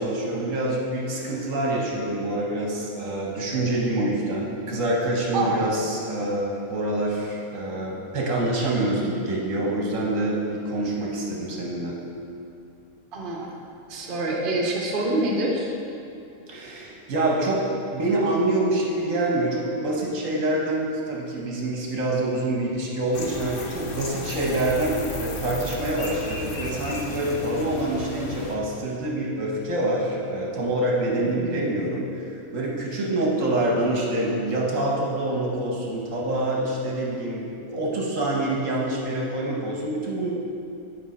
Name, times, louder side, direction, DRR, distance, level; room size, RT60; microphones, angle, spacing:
voice 1, 0.0-12.0 16.5-17.6 17.9-32.1 32.5-40.3, right 1 dB, 60° right, -2 dB, 1.3 m, -26 dB
voice 2, 13.1-13.5 13.9-15.7 31.2-31.6 33.0-33.4, right 2 dB, 40° right, -2 dB, 1.0 m, -27 dB
sound 1, 23.1-28.5, left 3 dB, 60° left, 1.1 m, -34 dB
8.8 x 4.8 x 4.2 m, 2.6 s
omnidirectional pair, 1.5 m